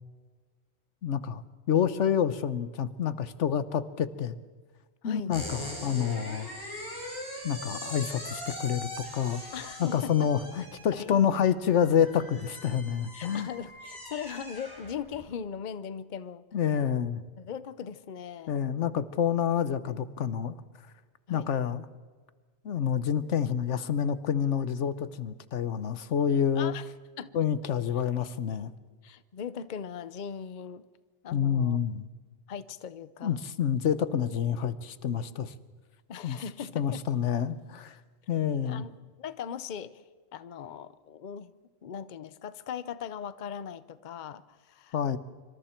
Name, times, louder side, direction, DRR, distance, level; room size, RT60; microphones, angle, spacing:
voice 1, 1.0-4.4 5.0-6.5 7.4-9.4 9.8-13.5 16.5-17.2 18.5-20.5 21.3-21.8 22.6-26.7 27.3-28.7 31.3-32.1 33.2-35.5 36.2-36.4 36.7-38.0 38.3-38.8 44.9-45.2, left 8 dB, 90° left, 14 dB, 1.2 m, -28 dB
voice 2, 5.0-5.4 9.5-10.3 10.9-11.2 13.1-16.4 17.4-18.6 21.3-21.5 26.5-26.9 27.2-27.3 29.0-30.9 31.2-31.8 32.5-33.4 36.1-37.0 38.6-40.0 40.3-41.5 41.8-45.0, left 7 dB, 45° left, 15 dB, 0.8 m, -39 dB
sound 1, 5.3-15.3, equal, 20° left, 5.3 m, -41 dB
26.0 x 25.0 x 4.5 m, 1.5 s
omnidirectional pair, 1.2 m